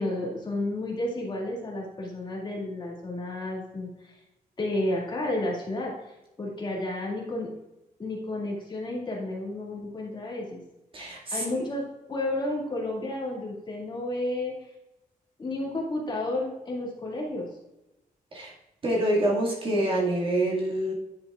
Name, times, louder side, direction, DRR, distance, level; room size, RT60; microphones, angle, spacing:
voice 1, 0.0-4.2 4.6-7.5 8.0-10.6 11.3-11.8 12.1-14.5 15.4-17.5, left 1 dB, 30° left, -3 dB, 2.2 m, -31 dB
voice 2, 10.9-11.7 18.3-18.5 18.8-20.9, right 1 dB, 35° right, -3 dB, 2.0 m, -26 dB
10.0 x 7.7 x 2.4 m, 0.97 s
wide cardioid pair, 155°, 15 cm